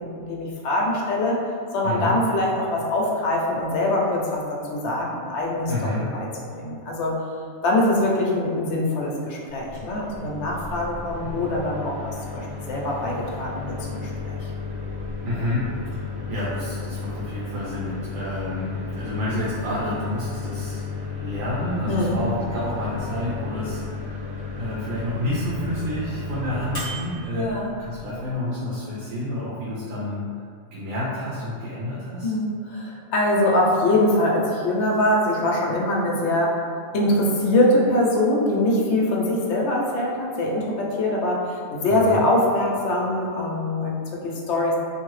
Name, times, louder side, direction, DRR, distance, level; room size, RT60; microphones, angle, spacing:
voice 1, 0.0-1.4 1.7-6.3 6.6-7.1 7.6-12.0 12.3-14.5 21.9-22.2 27.3-27.7 32.2-36.6 36.9-44.8, left 1 dB, 65° left, -3 dB, 0.8 m, -23 dB
voice 2, 1.8-2.2 5.7-6.1 15.2-20.8 21.1-24.3 24.5-30.2 30.7-32.3 41.8-42.2, left 1 dB, 75° right, -8 dB, 1.0 m, -29 dB
Microwave oven, 9.6-28.3, left 4 dB, 20° left, 1.0 m, -33 dB
2.7 x 2.6 x 3.1 m, 2.3 s
omnidirectional pair, 1.4 m